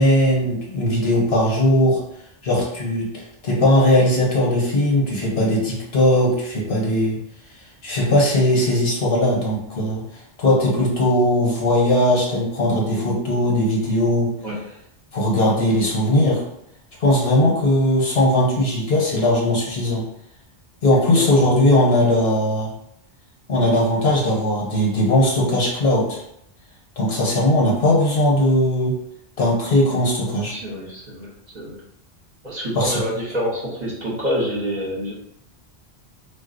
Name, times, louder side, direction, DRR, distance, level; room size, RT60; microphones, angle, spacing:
voice 1, 0.0-2.0 2.4-3.1 3.4-7.2 7.8-10.0 10.4-14.3 15.1-16.4 17.0-20.1 20.8-22.7 23.5-26.2 27.0-29.0 29.4-30.5 32.7-33.0, left 1 dB, 75° left, -3 dB, 1.2 m, -19 dB
voice 2, 21.1-21.5 30.5-31.3 31.5-31.8 32.4-35.1, equal, 45° right, -5 dB, 1.0 m, -27 dB
3.9 x 2.4 x 2.5 m, 0.75 s
omnidirectional pair, 1.1 m